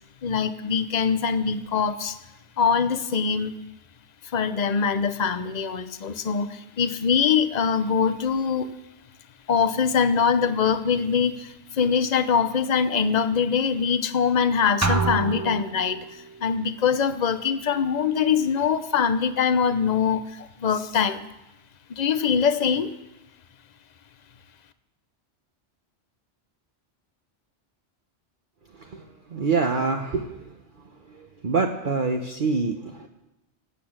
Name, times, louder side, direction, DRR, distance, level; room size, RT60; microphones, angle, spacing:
voice 1, 0.2-2.2 2.6-3.5 4.3-8.7 9.5-21.2 21.9-22.9, left 6 dB, 40° left, 11 dB, 0.8 m, -23 dB
sound 1, 14.8-16.3, right 4 dB, 20° right, 0.6 m, -26 dB
voice 2, 29.3-30.3 31.4-33.1, right 4 dB, 50° right, 3 dB, 1.1 m, -25 dB
17.0 x 8.4 x 8.8 m, 0.97 s
omnidirectional pair, 1.2 m